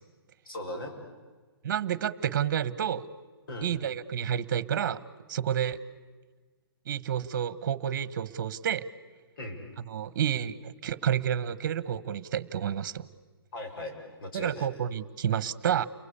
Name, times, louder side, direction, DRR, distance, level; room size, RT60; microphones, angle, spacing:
voice 1, 0.5-0.9 3.5-3.7 9.4-9.6 13.5-14.7, left 1 dB, 60° left, 3 dB, 7.0 m, -38 dB
voice 2, 1.6-3.1 3.6-5.0 5.3-5.8 6.9-8.8 9.9-13.1 14.3-15.9, right 9 dB, 45° right, 18 dB, 1.2 m, -30 dB
30.0 x 23.0 x 8.5 m, 1.4 s
hypercardioid pair, 160°, 13 cm